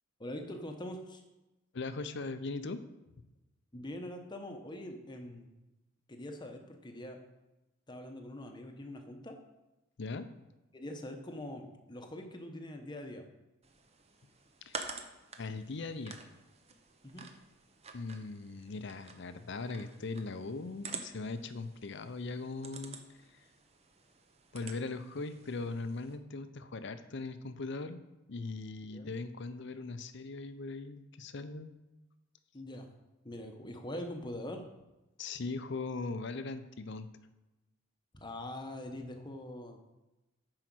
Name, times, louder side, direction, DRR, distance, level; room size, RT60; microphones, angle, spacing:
voice 1, 0.2-1.2 3.7-5.5 6.1-7.2 7.9-9.4 10.7-13.2 17.0-17.3 28.9-29.1 32.5-32.9 33.2-34.7 38.1-39.8, left 1 dB, 20° left, 4 dB, 0.9 m, -43 dB
voice 2, 1.7-2.8 10.0-10.3 14.7-14.9 15.4-16.2 17.9-23.0 23.3-23.4 24.5-28.0 28.3-31.7 35.2-37.1, left 3 dB, 60° left, 11 dB, 0.6 m, -39 dB
sound 1, 13.6-26.2, right 5 dB, 30° right, 0.7 m, -49 dB
9.1 x 4.9 x 6.1 m, 1.0 s
head